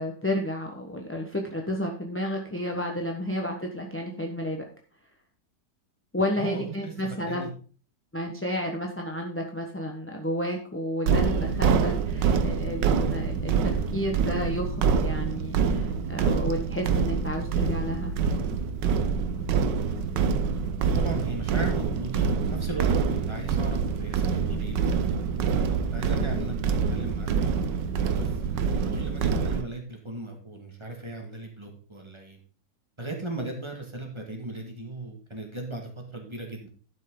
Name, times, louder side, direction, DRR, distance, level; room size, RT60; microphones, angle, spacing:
voice 1, 0.0-4.6 6.1-7.5 8.1-18.1, equal, 10° left, 2 dB, 0.8 m, -31 dB
voice 2, 6.4-7.5 20.8-24.8 25.3-27.6 28.1-28.3 28.6-32.4 33.0-36.7, right 2 dB, 15° right, 2 dB, 1.9 m, -37 dB
sound 1, 11.1-29.6, right 6 dB, 80° right, 1.5 m, -26 dB
12.0 x 6.4 x 3.8 m, 0.40 s
omnidirectional pair, 1.9 m